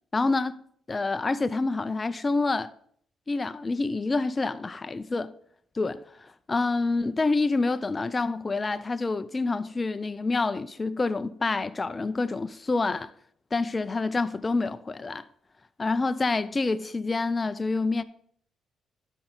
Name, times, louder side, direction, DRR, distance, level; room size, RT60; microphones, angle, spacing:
voice 1, 0.1-0.6 0.9-2.7 3.3-5.3 5.8-13.1 13.5-15.2 15.8-18.0, left 3 dB, 25° left, 0.5 m, -27 dB
12.0 x 4.5 x 3.8 m
cardioid pair, 90°, 0 cm